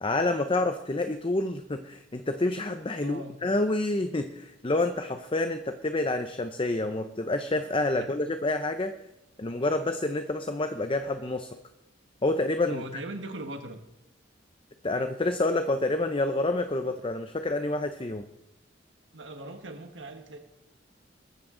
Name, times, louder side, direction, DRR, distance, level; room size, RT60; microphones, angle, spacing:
voice 1, 0.0-9.0 9.4-11.5 12.2-12.8 14.8-18.2, left 2 dB, 30° left, 8 dB, 0.7 m, -28 dB
voice 2, 3.0-3.4 8.0-8.1 12.7-13.8 19.1-20.4, right 1 dB, 80° right, 5 dB, 1.5 m, -39 dB
21.0 x 14.0 x 3.8 m, 0.90 s
head